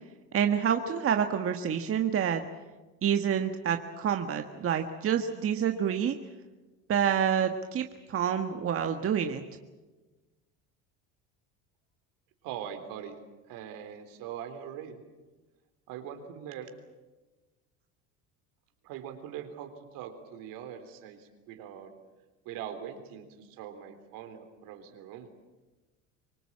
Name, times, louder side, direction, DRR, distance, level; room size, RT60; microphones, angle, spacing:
voice 1, 0.3-2.4 3.0-6.1 6.9-9.4, right 8 dB, 40° right, 6 dB, 1.5 m, -28 dB
voice 2, 12.4-13.2 13.5-15.0 15.9-16.7 18.8-21.9 22.5-25.3, right 9 dB, 70° right, 7 dB, 3.7 m, -42 dB
25.0 x 20.0 x 8.7 m, 1.2 s
supercardioid pair, 105°, 35 cm